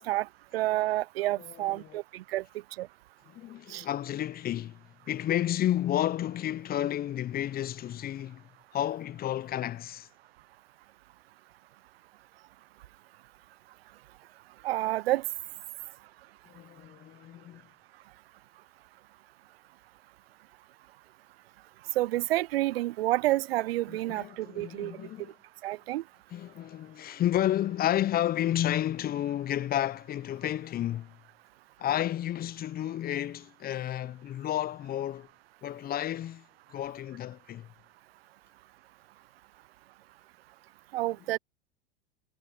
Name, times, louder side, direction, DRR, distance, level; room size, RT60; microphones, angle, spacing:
voice 1, 0.0-2.4 2.8-2.9 3.7-3.8 14.6-15.2 22.0-24.9 25.6-26.0 40.9-41.4, right 16 dB, 70° right, 0.7 m, -29 dB
voice 2, 1.4-2.0 3.3-10.1 16.5-17.6 23.9-25.3 26.3-31.2 31.8-35.3 35.6-36.4 36.7-37.7, left 12 dB, 30° left, 0.8 m, -31 dB
hypercardioid pair, 95°, 31 cm